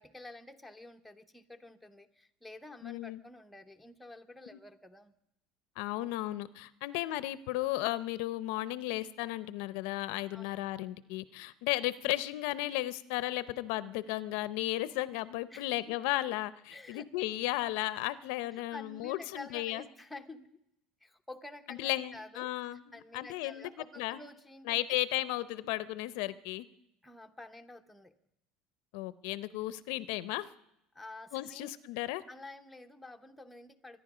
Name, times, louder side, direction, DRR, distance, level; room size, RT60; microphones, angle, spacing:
voice 1, 0.0-5.1 10.3-10.6 15.5-16.0 16.7-17.1 18.7-20.6 21.0-25.0 27.0-28.1 30.9-31.7 32.3-34.0, left 2 dB, 5° left, 5 dB, 0.9 m, -50 dB
voice 2, 2.8-3.2 5.8-19.8 21.7-22.8 23.1-23.7 24.0-24.2 24.7-26.7 28.9-30.5 31.3-32.2, left 16 dB, 75° left, 16 dB, 0.6 m, -34 dB
24.0 x 10.5 x 5.0 m, 0.81 s
cardioid pair, 135°, 0 cm